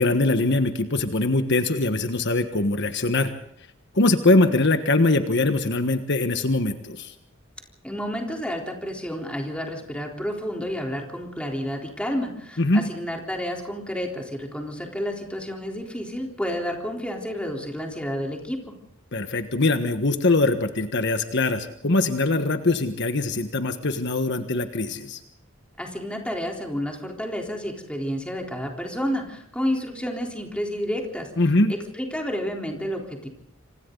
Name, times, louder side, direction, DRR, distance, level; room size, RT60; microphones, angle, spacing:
voice 1, 0.0-3.3 3.9-7.1 12.6-12.9 19.1-25.2 31.4-31.7, left 2 dB, 60° left, 8 dB, 1.4 m, -22 dB
voice 2, 7.8-18.6 25.8-31.3 31.7-33.3, equal, 5° left, 1 dB, 3.8 m, -30 dB
27.5 x 26.5 x 4.0 m, 0.71 s
head